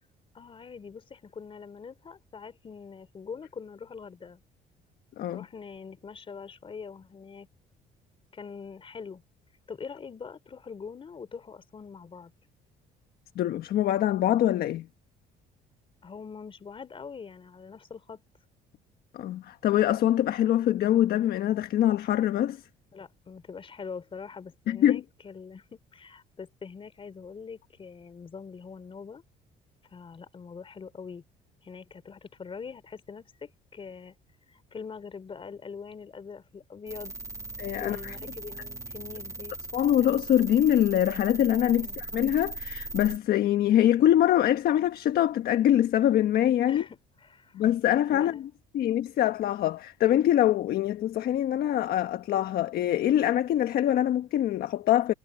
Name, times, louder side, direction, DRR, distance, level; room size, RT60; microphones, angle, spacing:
voice 1, 0.3-4.4 5.3-7.5 8.3-9.2 9.7-12.3 16.0-18.2 22.9-29.2 29.9-31.2 31.6-34.1 34.5-37.1 37.7-39.6 41.7-42.0 46.7-47.6 48.1-48.4, left 5 dB, 30° left, 3.7 m, -43 dB
voice 2, 13.3-14.9 19.1-22.6 24.7-25.0 37.6-38.2 39.7-46.8 47.5-48.4 48.7-55.1, left 12 dB, 65° left, 1.3 m, -24 dB
sound 1, 36.9-43.2, right 2 dB, 20° right, 1.9 m, -39 dB
cardioid pair, 110°, 17 cm